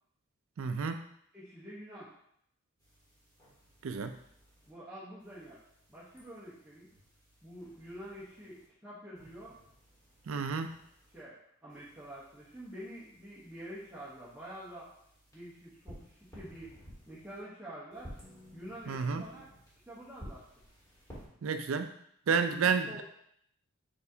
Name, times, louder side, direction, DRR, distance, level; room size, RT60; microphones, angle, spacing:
voice 1, 0.6-1.0 3.8-4.1 10.3-10.7 18.9-19.2 21.4-21.9 22.3-23.0, right 5 dB, 75° right, 8 dB, 0.4 m, -30 dB
voice 2, 1.3-2.1 4.7-5.6 5.9-6.9 7.4-9.6 11.1-14.9 15.3-16.7 17.1-18.1 18.5-19.5 19.9-20.5 22.3-22.6 22.8-23.0, equal, 5° right, -11 dB, 0.9 m, -47 dB
sound 1, 2.8-4.7 5.2-8.7 9.1-11.2 11.7-17.4 17.9-21.3, equal, 15° left, 1.7 m, -55 dB
4.7 x 4.0 x 2.7 m, 0.70 s
head